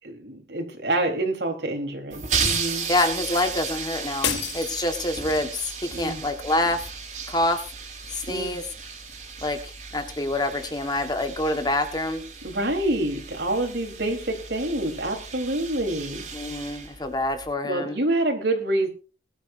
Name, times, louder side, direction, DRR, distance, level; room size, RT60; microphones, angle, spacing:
voice 1, 0.0-2.9 5.9-6.2 8.3-8.6 12.4-16.2 17.6-18.9, right 1 dB, 75° right, 3 dB, 4.2 m, -27 dB
sound 1, 2.1-17.5, right 5 dB, 45° right, 4.1 m, -34 dB
voice 2, 2.9-6.8 7.3-7.6 8.1-8.6 9.4-9.6 9.9-12.2 16.3-18.0, left 2 dB, 25° left, 7 dB, 1.6 m, -26 dB
sound 2, 4.2-5.5, left 9 dB, 85° left, 1.4 m, -31 dB
20.5 x 12.5 x 2.7 m, 0.34 s
head